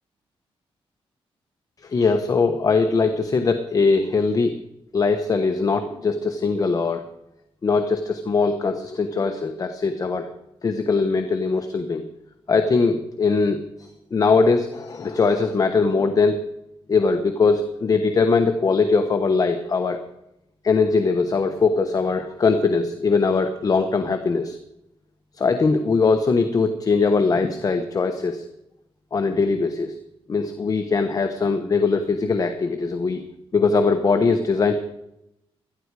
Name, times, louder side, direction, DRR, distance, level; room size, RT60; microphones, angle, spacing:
voice 1, 1.9-4.5 4.9-7.0 7.6-10.3 10.6-12.0 12.5-13.6 14.1-16.4 16.9-20.0 20.6-24.6 25.4-28.4 29.1-29.9 30.3-33.2 33.5-34.8, left 4 dB, 35° left, 7 dB, 1.1 m, -21 dB
18.0 x 13.0 x 4.8 m, 0.85 s
cardioid pair, 120°, 10 cm